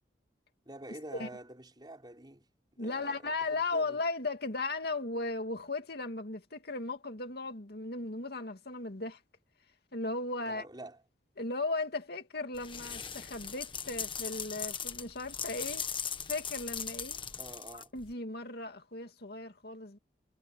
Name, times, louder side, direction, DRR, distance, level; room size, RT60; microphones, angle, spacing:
voice 1, 0.7-2.4 2.8-4.0 10.5-11.0 17.4-17.9, right 1 dB, 25° right, 5.3 m, -47 dB
voice 2, 2.8-9.2 9.9-10.7 11.4-15.9 16.3-17.2 17.7-20.0, left 3 dB, 65° left, 2.4 m, -36 dB
sound 1, 12.5-18.1, left 7 dB, 30° left, 1.4 m, -39 dB
head